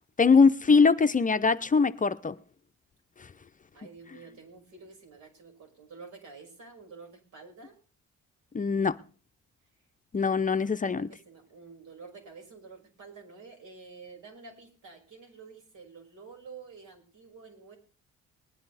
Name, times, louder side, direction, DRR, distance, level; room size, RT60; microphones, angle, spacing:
voice 1, 0.2-2.4 8.5-9.0 10.1-11.1, left 5 dB, 25° left, 0.6 m, -22 dB
voice 2, 3.7-7.8 10.1-10.5 10.8-17.8, right 4 dB, 80° right, 5.9 m, -49 dB
20.0 x 10.0 x 4.1 m
cardioid pair, 90°, 30 cm